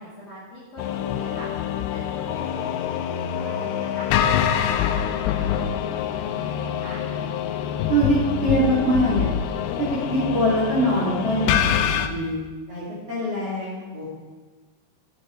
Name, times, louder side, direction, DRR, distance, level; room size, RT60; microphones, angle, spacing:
voice 1, 0.0-1.5 1.9-4.1 4.4-5.0 5.4-7.0, equal, 45° left, -8 dB, 2.8 m, -41 dB
sound 1, 0.8-12.1, left 9 dB, 85° left, 2.4 m, -25 dB
voice 2, 7.9-9.3 10.1-12.4 12.7-14.0, right 1 dB, 35° right, -7 dB, 3.4 m, -23 dB
14.0 x 9.1 x 4.6 m, 1.3 s
omnidirectional pair, 5.3 m